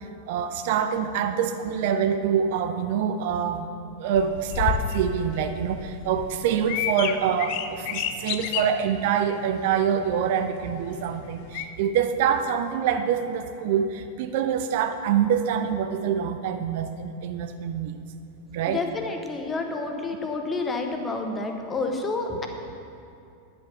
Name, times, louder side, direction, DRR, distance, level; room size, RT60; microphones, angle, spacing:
voice 1, 0.3-3.7 4.0-17.9 18.5-18.8, right 8 dB, 50° right, 8 dB, 0.5 m, -25 dB
sound 1, 4.1-11.7, left 8 dB, 45° left, 0.5 m, -32 dB
voice 2, 18.7-22.5, left 3 dB, 15° left, 4 dB, 1.0 m, -29 dB
10.5 x 6.9 x 5.7 m, 2.6 s
figure-of-eight pair, 90°, 0 cm